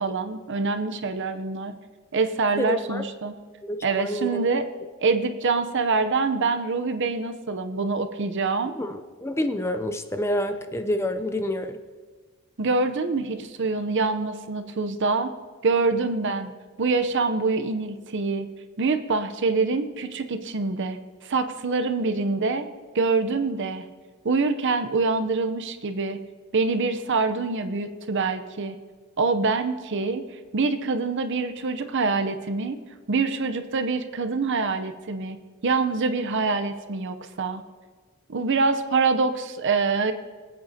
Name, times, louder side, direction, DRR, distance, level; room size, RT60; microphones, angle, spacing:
voice 1, 0.0-1.7 2.1-3.3 3.8-4.6 5.0-8.7 12.6-15.3 15.6-16.5 16.8-18.5 18.8-21.0 21.2-22.7 22.9-23.9 24.2-26.2 26.5-28.8 29.2-30.3 30.5-32.8 33.1-35.4 35.6-37.6 38.3-40.1, right 4 dB, 55° right, 9 dB, 0.7 m, -25 dB
voice 2, 2.6-3.0 3.6-4.4 8.8-11.8, left 1 dB, 10° left, 8 dB, 0.5 m, -28 dB
23.5 x 8.8 x 2.8 m, 1.5 s
head